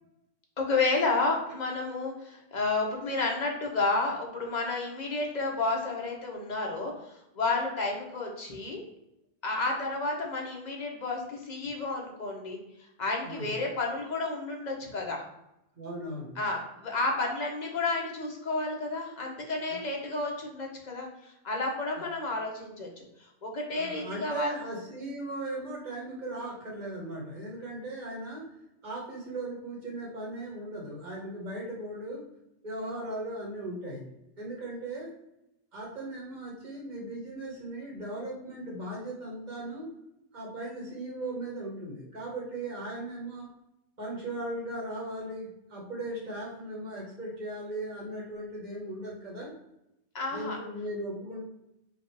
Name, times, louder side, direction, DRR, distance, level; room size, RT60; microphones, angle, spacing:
voice 1, 0.6-8.8 9.4-12.6 13.0-15.2 16.4-23.0 23.4-24.5 50.1-50.6, left 3 dB, 45° left, 0 dB, 0.9 m, -31 dB
voice 2, 13.2-13.5 15.8-16.4 19.7-19.8 22.0-22.1 23.7-28.4 28.8-32.2 32.6-34.0 34.4-35.1 35.7-39.9 40.3-43.5 44.0-49.5 50.3-51.4, right 1 dB, 45° right, -4 dB, 1.4 m, -38 dB
5.0 x 2.5 x 3.2 m, 0.86 s
omnidirectional pair, 1.1 m